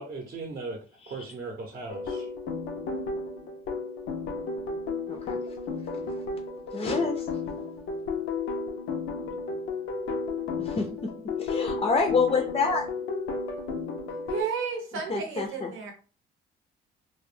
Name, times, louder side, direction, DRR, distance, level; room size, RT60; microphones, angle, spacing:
voice 1, 0.0-2.3, right 3 dB, 45° right, 1 dB, 0.6 m, -38 dB
sound 1, 1.9-14.4, left 4 dB, 85° left, 0.5 m, -33 dB
voice 2, 5.1-5.4 6.7-7.3 10.6-11.1 11.4-12.9 15.1-15.7, left 4 dB, 30° left, 3 dB, 0.4 m, -27 dB
voice 3, 14.3-15.9, right 6 dB, 85° right, 2 dB, 0.7 m, -32 dB
2.2 x 2.0 x 3.2 m, 0.35 s
cardioid pair, 90°, 20 cm